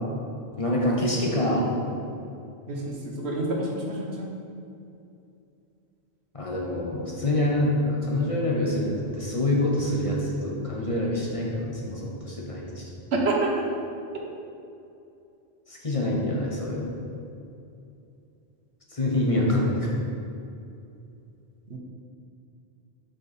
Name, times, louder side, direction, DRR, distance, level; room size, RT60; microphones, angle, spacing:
voice 1, 0.6-1.6 6.3-12.8 15.7-16.9 18.9-19.9, left 1 dB, 35° left, -3 dB, 1.1 m, -26 dB
voice 2, 2.7-4.3 13.1-13.5 21.7-21.8, right 2 dB, 75° right, -1 dB, 1.3 m, -27 dB
7.0 x 5.4 x 4.3 m, 2.6 s
omnidirectional pair, 1.1 m